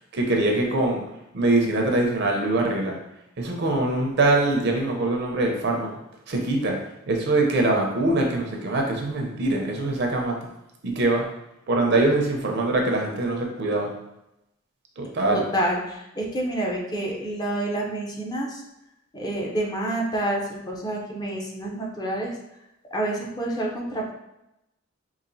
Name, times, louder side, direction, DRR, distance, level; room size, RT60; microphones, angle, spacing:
voice 1, 0.1-1.0 1.3-3.0 3.4-5.9 6.3-6.8 7.1-10.3 10.8-11.3 11.7-13.9 15.0-15.5, right 2 dB, 60° right, 1 dB, 0.6 m, -23 dB
voice 2, 15.3-18.6 19.1-22.4 22.9-24.1, right 1 dB, 20° left, -2 dB, 0.6 m, -28 dB
3.9 x 2.5 x 2.6 m, 0.88 s
head